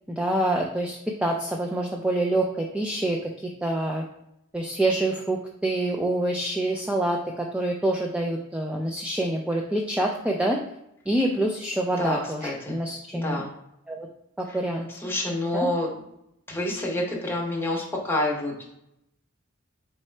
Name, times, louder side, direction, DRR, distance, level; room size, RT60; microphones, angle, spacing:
voice 1, 0.1-4.0 4.5-10.6 11.1-13.4 13.9-14.1 14.4-14.9 15.5-15.7, right 1 dB, 5° right, 0 dB, 0.3 m, -26 dB
voice 2, 12.0-12.8 13.1-13.5 14.5-14.6 14.9-15.9 16.5-18.6, left 1 dB, 10° left, -2 dB, 0.8 m, -28 dB
4.1 x 3.6 x 3.2 m, 0.81 s
head